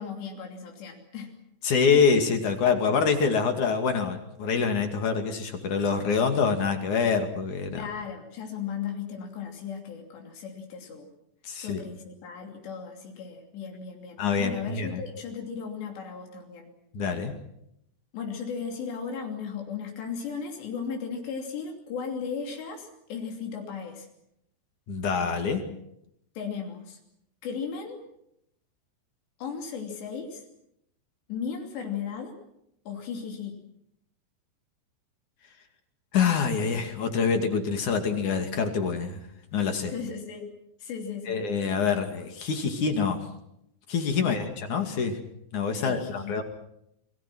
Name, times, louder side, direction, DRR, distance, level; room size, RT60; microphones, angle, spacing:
voice 1, 0.0-1.3 1.7-1.9 7.7-11.1 11.6-16.7 18.1-24.1 26.4-27.0 27.4-28.0 29.4-30.4 31.3-32.4 32.9-33.6 39.9-40.5 40.8-41.4 44.2-44.5 45.8-46.4, left 6 dB, 85° left, 2 dB, 5.1 m, -36 dB
voice 2, 1.6-7.9 11.4-11.8 14.2-15.0 16.9-17.3 24.9-25.6 36.1-39.2 39.5-39.9 41.3-43.2 43.9-45.2 45.5-46.4, left 5 dB, 50° left, 5 dB, 3.5 m, -25 dB
29.0 x 22.0 x 6.2 m, 0.79 s
omnidirectional pair, 4.9 m